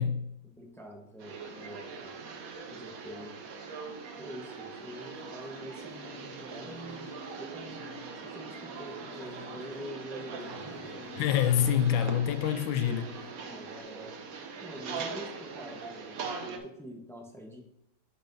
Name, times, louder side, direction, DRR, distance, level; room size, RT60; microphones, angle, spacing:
voice 1, 0.4-2.1 2.7-3.3 4.2-7.1 7.4-7.8 8.2-11.1 13.5-14.2 14.6-17.6, equal, 5° left, 0.6 m, -46 dB
sound 1, 1.2-16.6, right 5 dB, 60° right, 1.0 m, -42 dB
sound 2, 4.8-13.8, left 1 dB, 55° left, 1.3 m, -50 dB
voice 2, 11.2-13.1, left 9 dB, 85° left, 1.4 m, -26 dB
10.0 x 5.5 x 2.7 m
omnidirectional pair, 2.1 m